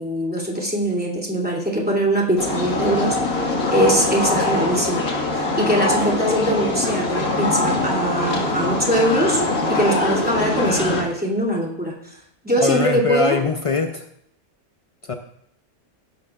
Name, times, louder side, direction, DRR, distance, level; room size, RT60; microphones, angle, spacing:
voice 1, 0.0-5.0 5.3-9.4 9.7-12.2 12.4-13.4, equal, 5° right, -4 dB, 2.6 m, -22 dB
sound 1, 2.4-11.0, left 2 dB, 80° left, 2.3 m, -23 dB
voice 2, 12.6-14.1 15.0-15.1, left 4 dB, 60° left, 5 dB, 0.3 m, -22 dB
17.5 x 11.0 x 2.4 m, 0.74 s
omnidirectional pair, 1.5 m